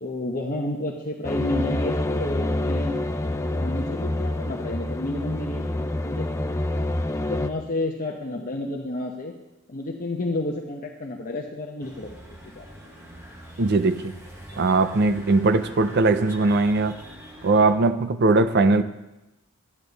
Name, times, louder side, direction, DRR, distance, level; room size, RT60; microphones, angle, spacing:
voice 1, 0.0-2.9 3.4-6.3 7.3-9.3 9.7-12.1 12.4-12.7, left 2 dB, 40° left, 1 dB, 0.9 m, -30 dB
sound 1, 1.2-7.5, left 1 dB, 15° left, 0.4 m, -27 dB
sound 2, 11.8-17.7, equal, 10° right, 1.3 m, -44 dB
voice 2, 13.6-14.1 14.6-17.0 17.4-18.8, right 3 dB, 50° right, 11 dB, 0.6 m, -20 dB
12.0 x 9.9 x 4.0 m, 0.98 s
head